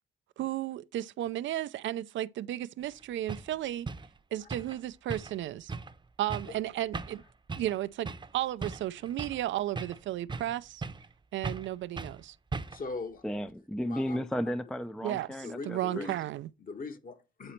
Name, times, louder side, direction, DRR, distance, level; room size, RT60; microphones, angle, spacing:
voice 1, 0.4-3.9 4.3-5.7 6.2-7.2 7.5-10.8 11.3-12.4 15.0-15.3 15.7-16.5, right 13 dB, 70° right, 0.5 m, -34 dB
sound 1, 2.8-2.9 3.3-3.5 3.9-4.1 4.5-4.8 5.1-5.4 5.7-5.9 6.3-6.6 6.9-7.2 7.5-7.8 8.1-8.3 8.6-9.4 9.8-10.5 10.8-11.1 11.4-11.7 12.0-12.2 12.5-12.9, right 4 dB, 25° right, 0.8 m, -38 dB
voice 2, 12.7-13.2 13.8-14.2 15.4-16.1 16.7-17.5, left 4 dB, 45° left, 1.5 m, -40 dB
voice 3, 13.2-16.1, equal, 5° left, 0.4 m, -34 dB
8.7 x 4.1 x 4.4 m
cardioid pair, 90°, 20 cm